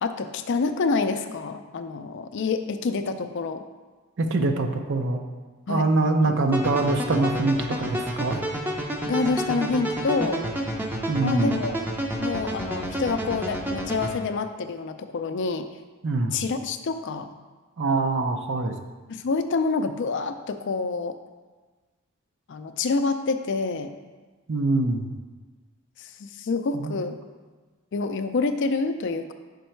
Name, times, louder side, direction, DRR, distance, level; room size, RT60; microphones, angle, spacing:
voice 1, 0.0-3.6 5.7-5.9 6.2-6.4 9.0-10.4 11.2-11.8 12.2-15.7 16.3-17.3 19.1-21.1 22.5-23.9 26.0-27.2 27.9-29.3, left 4 dB, 55° left, 9 dB, 0.4 m, -27 dB
voice 2, 4.2-5.2 5.7-8.4 11.1-11.5 16.0-16.4 17.8-18.8 24.5-25.1 26.7-27.0, right 2 dB, 55° right, 5 dB, 0.5 m, -24 dB
sound 1, 6.5-14.1, equal, 10° right, 0.5 m, -30 dB
5.5 x 5.2 x 4.4 m, 1.3 s
head